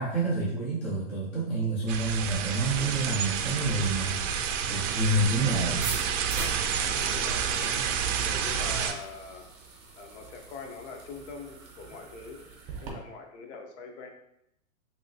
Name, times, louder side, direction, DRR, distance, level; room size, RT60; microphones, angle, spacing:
voice 1, 0.0-5.9, right 2 dB, 5° left, -9 dB, 0.3 m, -28 dB
sound 1, 1.9-8.9, right 7 dB, 60° right, 0.5 m, -29 dB
sound 2, 5.7-12.9, right 4 dB, 25° right, 0.7 m, -43 dB
voice 2, 6.8-7.8 8.2-9.5 10.0-12.4 12.8-14.1, left 4 dB, 55° left, 2 dB, 0.7 m, -43 dB
3.1 x 2.8 x 2.6 m, 0.80 s
hypercardioid pair, 130°, 42 cm